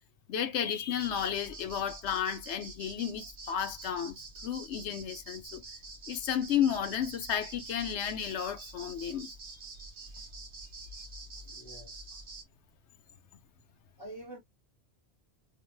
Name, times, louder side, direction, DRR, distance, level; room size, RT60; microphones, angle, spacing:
voice 1, 0.3-4.2 4.4-5.6 6.1-9.3, left 9 dB, 85° left, 1.0 m, -32 dB
sound 1, 1.0-12.4, right 3 dB, 50° right, 1.0 m, -46 dB
voice 2, 11.4-12.2 14.0-14.4, right 1 dB, 20° left, 1.1 m, -48 dB
2.5 x 2.2 x 3.2 m
omnidirectional pair, 1.1 m